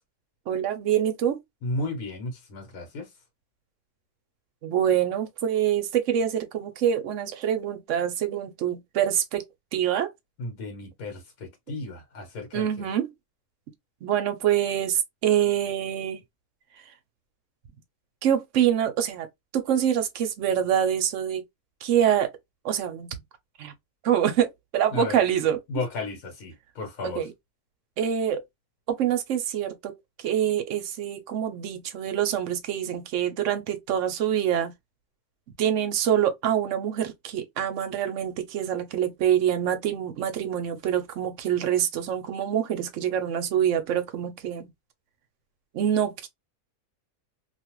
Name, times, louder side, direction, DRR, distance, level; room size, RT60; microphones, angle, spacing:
voice 1, 0.5-1.4 4.6-9.4 9.7-10.1 12.5-13.1 14.0-16.2 18.2-19.3 19.5-21.4 21.8-22.3 22.6-23.1 23.6-23.7 24.0-25.6 27.0-27.3 28.0-28.4 28.9-29.9 30.2-34.7 35.6-44.7 45.7-46.3, right 9 dB, 65° right, 0.8 m, -25 dB
voice 2, 1.6-3.1 10.4-12.7 24.9-25.2 25.7-27.2, left 2 dB, 70° left, 1.4 m, -34 dB
2.6 x 2.4 x 2.9 m
omnidirectional pair, 1.6 m